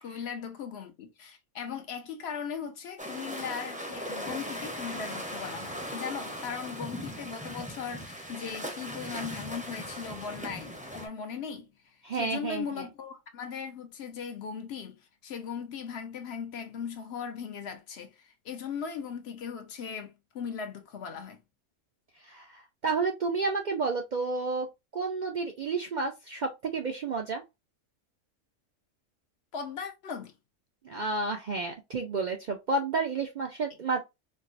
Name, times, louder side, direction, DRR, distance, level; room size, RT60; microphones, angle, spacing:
voice 1, 0.0-21.4 29.5-30.3, left 7 dB, 65° left, 0.8 m, -38 dB
sound 1, 3.0-11.1, equal, 10° right, 0.5 m, -39 dB
voice 2, 12.0-12.9 22.2-24.7 24.9-27.4 30.8-34.0, right 3 dB, 55° right, 0.5 m, -31 dB
4.4 x 2.0 x 2.5 m
omnidirectional pair, 1.3 m